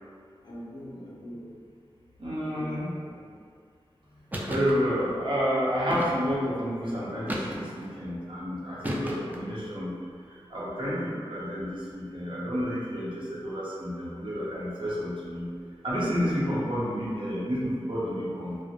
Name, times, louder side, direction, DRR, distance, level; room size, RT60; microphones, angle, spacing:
voice 1, 0.4-1.5 2.5-3.3 4.0-4.3, equal, 45° left, -5 dB, 0.5 m, -43 dB
voice 2, 2.2-2.9 4.5-7.7 8.0-9.9 10.5-15.5 15.8-18.6, equal, 55° right, -8 dB, 0.7 m, -30 dB
sound 1, 4.3-4.8 5.9-6.5 7.3-7.9 8.8-9.5, equal, 15° right, 0.3 m, -33 dB
2.5 x 2.1 x 2.8 m, 2.1 s
wide cardioid pair, 75°, 10 cm